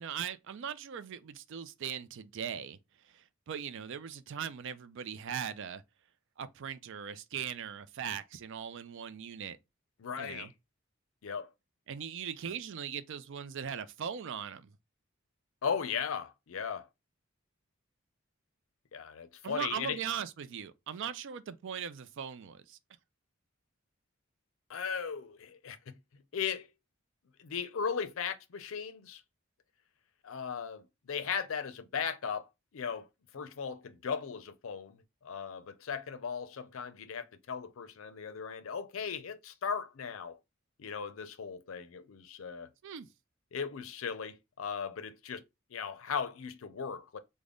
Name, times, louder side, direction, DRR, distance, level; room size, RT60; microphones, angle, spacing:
voice 1, 0.0-2.8 3.0-5.8 6.4-9.6 10.2-10.5 11.9-14.7 19.4-22.8 42.8-43.1, right 8 dB, 65° right, 0.4 m, -39 dB
voice 2, 10.0-10.5 11.2-11.5 15.6-16.9 18.9-20.0 24.7-25.8 26.3-26.7 27.4-29.2 30.2-32.5 32.7-33.1 33.3-40.4 40.8-42.7 43.5-45.4 45.7-47.2, left 6 dB, 70° left, 0.5 m, -37 dB
3.4 x 2.1 x 3.7 m
head